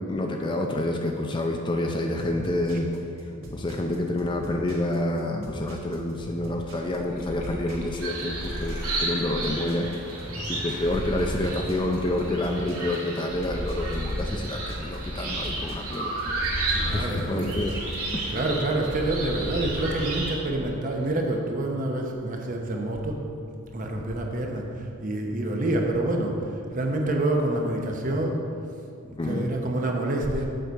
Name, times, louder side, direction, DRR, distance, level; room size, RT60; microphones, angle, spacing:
voice 1, 0.1-2.9 3.5-9.9 10.5-16.2 16.8-17.7 18.1-18.2 24.0-24.1 29.2-29.5, left 1 dB, 20° left, 2 dB, 0.4 m, -28 dB
sound 1, 2.2-18.1, equal, 65° right, 1.6 m, -42 dB
Cat purr domestic happy glad, 6.7-12.9 13.2-20.2 20.6-21.3, left 1 dB, 80° left, 1.5 m, -36 dB
sound 2, 8.0-20.4, right 2 dB, 85° right, 2.0 m, -33 dB
voice 2, 10.3-10.8 16.7-17.6 18.3-23.2 23.7-28.4 29.0-30.5, right 1 dB, 35° right, 1 dB, 0.9 m, -27 dB
7.7 x 6.8 x 4.6 m, 2.5 s
head